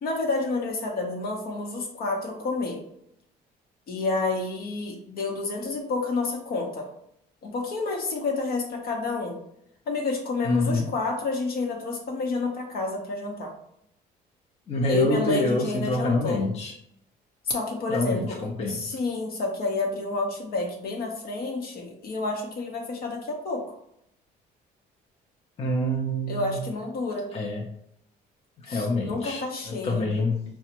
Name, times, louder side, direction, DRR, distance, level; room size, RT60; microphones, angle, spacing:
voice 1, 0.0-2.8 3.9-6.9 7.4-9.4 9.9-13.5 14.9-16.5 17.5-23.6 26.3-27.3 28.7-30.1, left 3 dB, 65° left, 0 dB, 1.1 m, -29 dB
voice 2, 10.4-10.9 14.7-16.7 17.9-19.0 25.6-26.6 27.3-27.6 28.7-30.4, left 1 dB, 40° left, -1 dB, 0.8 m, -26 dB
4.8 x 2.3 x 3.0 m, 0.74 s
cardioid pair, 110°, 17 cm